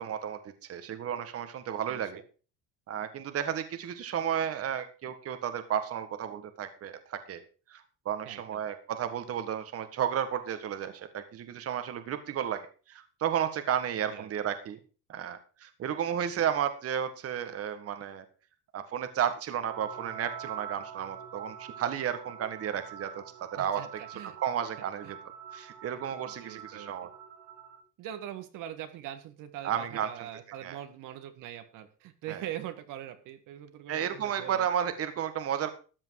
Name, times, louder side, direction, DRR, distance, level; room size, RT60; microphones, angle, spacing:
voice 1, 0.0-2.2 2.9-7.4 7.7-14.8 15.1-18.2 18.7-23.2 23.5-23.8 24.4-25.2 25.5-27.1 29.6-30.3 30.6-30.8 32.3-32.4 33.9-35.7, right 9 dB, 40° right, 9 dB, 1.6 m, -33 dB
voice 2, 8.2-8.6 14.1-14.3 23.6-24.4 25.0-25.1 26.2-26.9 28.0-34.7, right 11 dB, 60° right, 8 dB, 1.8 m, -42 dB
sound 1, 19.7-27.8, right 8 dB, 85° right, 5.9 m, -45 dB
14.0 x 9.0 x 4.7 m, 0.36 s
supercardioid pair, 105°, 35 cm